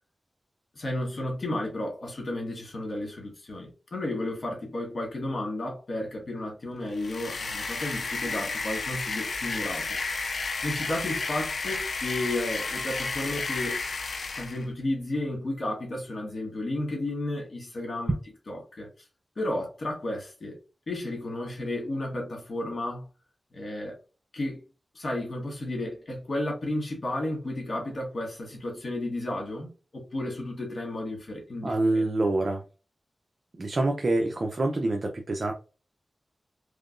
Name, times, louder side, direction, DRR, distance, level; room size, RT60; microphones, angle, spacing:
voice 1, 0.8-9.9 10.6-13.8 14.4-18.1 18.5-18.9 19.4-20.6 20.9-23.1 23.5-23.9 24.3-24.6 24.9-32.1, left 1 dB, 60° left, 1.9 m, -33 dB
sound 1, 6.9-14.7, left 4 dB, 75° left, 0.5 m, -32 dB
voice 2, 31.6-32.6 33.6-35.5, right 2 dB, 55° right, 0.6 m, -26 dB
3.7 x 3.3 x 2.6 m
cardioid pair, 50°, 0 cm